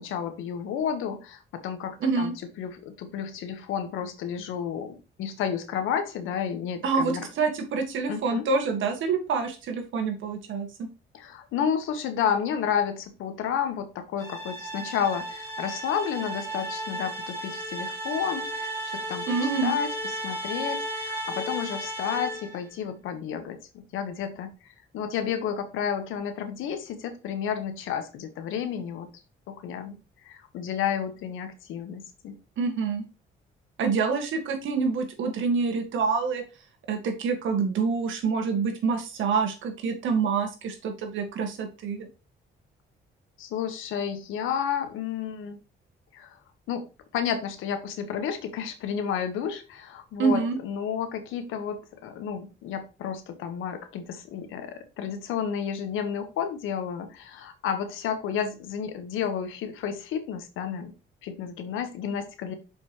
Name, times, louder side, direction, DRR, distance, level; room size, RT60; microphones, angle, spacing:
voice 1, 0.0-2.3 2.6-7.3 8.1-8.4 11.1-19.2 19.6-24.5 24.9-29.1 29.5-30.0 30.2-32.4 43.4-45.6 46.1-46.4 46.7-46.8 47.1-60.9 61.2-62.5, left 8 dB, 90° left, 8 dB, 1.3 m, -31 dB
voice 2, 2.0-2.3 6.8-10.9 19.3-19.7 32.6-33.0 33.8-36.4 36.9-42.1 50.2-50.6, right 5 dB, 75° right, 5 dB, 1.8 m, -27 dB
sound 1, 14.2-22.6, right 1 dB, 15° left, 2.9 m, -34 dB
6.8 x 5.3 x 3.1 m, 0.31 s
cardioid pair, 90°, 20 cm